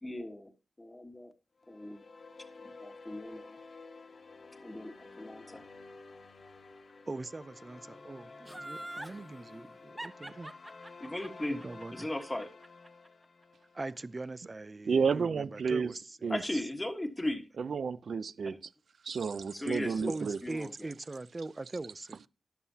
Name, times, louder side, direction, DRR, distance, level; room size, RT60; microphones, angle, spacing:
voice 1, 0.0-0.5 0.8-1.3 1.7-2.0 2.6-3.6 4.6-5.7 11.0-11.6 11.9-12.5 16.3-17.5 18.4-18.6 19.1-19.2 19.5-20.9, left 1 dB, 15° left, 1.5 m, -37 dB
sound 1, 1.6-14.0, left 3 dB, 60° left, 1.7 m, -52 dB
voice 2, 7.1-10.5 11.5-12.1 13.7-16.2 20.1-22.3, right 2 dB, 30° right, 0.6 m, -41 dB
Laughter, 8.5-9.2 10.0-13.1 13.4-13.5, right 1 dB, 15° right, 0.9 m, -43 dB
voice 3, 14.9-15.9 16.2-16.4 17.6-18.6 19.0-20.4, right 5 dB, 75° right, 0.5 m, -31 dB
12.5 x 11.5 x 2.8 m
wide cardioid pair, 115°, 0 cm